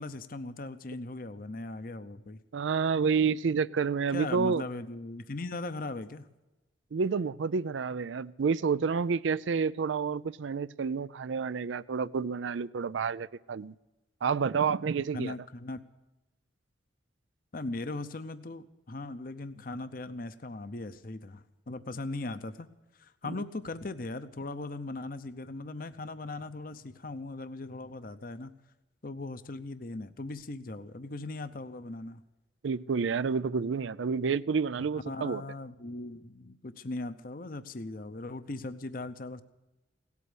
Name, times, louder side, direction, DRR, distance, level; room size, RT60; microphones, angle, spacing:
voice 1, 0.0-2.4 4.1-6.3 15.1-15.8 17.5-22.7 22.9-28.5 29.0-32.2 34.8-39.4, left 2 dB, 50° left, 12 dB, 0.8 m, -39 dB
voice 2, 2.5-4.6 6.9-13.7 14.2-15.3 23.2-23.4 32.6-35.4, right 5 dB, 85° right, 16 dB, 0.5 m, -29 dB
17.5 x 8.4 x 9.5 m, 1.0 s
head